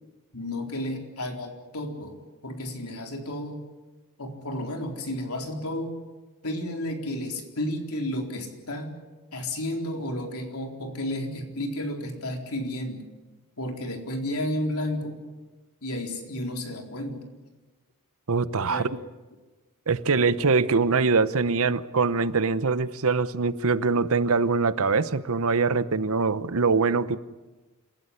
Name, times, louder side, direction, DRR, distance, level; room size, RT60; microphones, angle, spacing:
voice 1, 0.3-3.6 4.2-6.0 6.4-8.9 9.3-13.0 13.6-15.2 15.8-17.2 18.7-18.9, left 1 dB, 70° left, 3 dB, 4.1 m, -32 dB
voice 2, 18.3-18.8 19.9-27.2, right 4 dB, 70° right, 15 dB, 0.9 m, -23 dB
27.5 x 15.5 x 10.0 m, 1.2 s
head